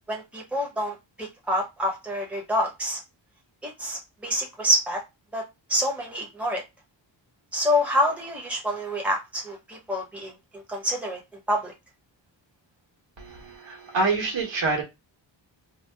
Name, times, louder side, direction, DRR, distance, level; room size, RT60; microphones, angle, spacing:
voice 1, 0.1-3.0 3.6-5.0 5.3-5.4 5.7-6.6 7.5-11.2 11.5-11.7, equal, 5° right, 0.9 m, -27 dB
voice 2, 13.2-14.8, right 3 dB, 75° right, 1.3 m, -26 dB
2.8 x 2.1 x 3.3 m
wide cardioid pair, 130°, 45 cm